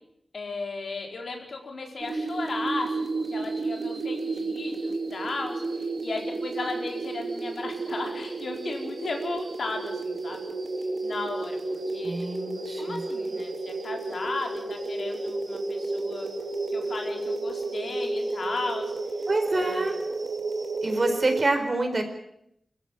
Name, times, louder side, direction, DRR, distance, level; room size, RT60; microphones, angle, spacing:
voice 1, 0.3-10.5 11.0-11.6 11.9-12.1 12.8-16.3 16.7-18.9 19.5-19.8, left 3 dB, 75° left, 3 dB, 4.5 m, -35 dB
sound 1, 2.0-21.5, right 3 dB, 60° right, 3.1 m, -32 dB
voice 2, 12.0-13.0 19.3-20.0 20.8-22.0, right 2 dB, 40° right, 5 dB, 4.6 m, -26 dB
26.5 x 15.0 x 8.9 m, 0.75 s
wide cardioid pair, 105°, 0 cm